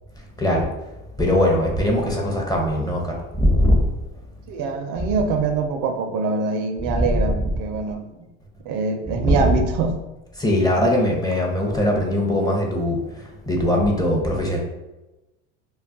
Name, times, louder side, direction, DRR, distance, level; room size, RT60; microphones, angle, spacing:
voice 1, 1.2-3.8 6.9-7.5 9.1-9.5 10.4-13.0 13.5-14.6, left 1 dB, 10° left, -1 dB, 0.6 m, -20 dB
voice 2, 4.5-8.1 8.6-10.0, right 4 dB, 55° right, 5 dB, 0.5 m, -24 dB
2.2 x 2.1 x 3.7 m, 1.0 s
supercardioid pair, 90°, 36 cm